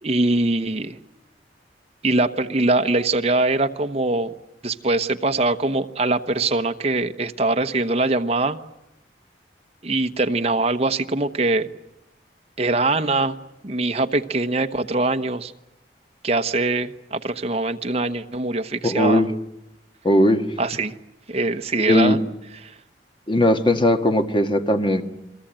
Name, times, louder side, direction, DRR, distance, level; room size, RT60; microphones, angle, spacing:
voice 1, 0.0-1.0 2.0-4.3 4.6-8.6 9.8-11.7 12.6-13.4 13.6-15.5 16.2-19.3 20.6-21.0 21.3-22.3 22.6-22.7, right 2 dB, 35° right, 7 dB, 1.1 m, -22 dB
voice 2, 18.8-19.3 20.0-20.4 21.8-22.2 23.3-25.0, left 1 dB, 30° left, 7 dB, 1.6 m, -18 dB
29.0 x 22.0 x 8.9 m, 0.88 s
head